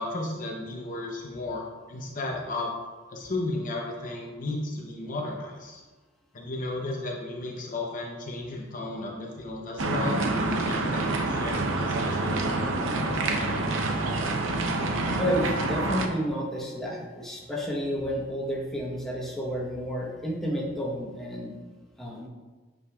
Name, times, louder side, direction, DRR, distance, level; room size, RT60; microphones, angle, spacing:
voice 1, 0.0-2.7 3.1-5.8 6.3-13.8, left 2 dB, 45° left, -1 dB, 0.7 m, -34 dB
sound 1, 9.8-16.1, right 2 dB, 75° right, 0.7 m, -27 dB
voice 2, 15.2-21.6 22.0-22.3, equal, ahead, -4 dB, 1.1 m, -31 dB
8.4 x 5.1 x 2.4 m, 1.3 s
head